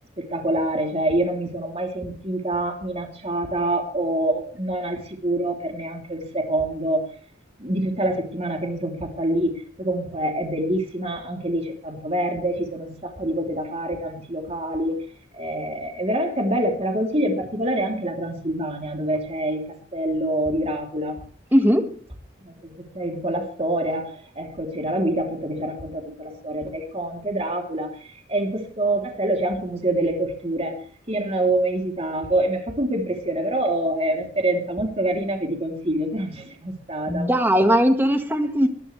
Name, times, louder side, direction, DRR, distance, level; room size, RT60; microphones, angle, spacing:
voice 1, 0.2-7.1 7.6-14.9 15.3-21.2 22.4-27.9 28.3-30.8 31.1-37.3, right 1 dB, 30° right, 3.2 m, -26 dB
voice 2, 21.5-22.0 37.1-38.7, equal, 10° right, 1.7 m, -19 dB
20.5 x 12.0 x 3.3 m
head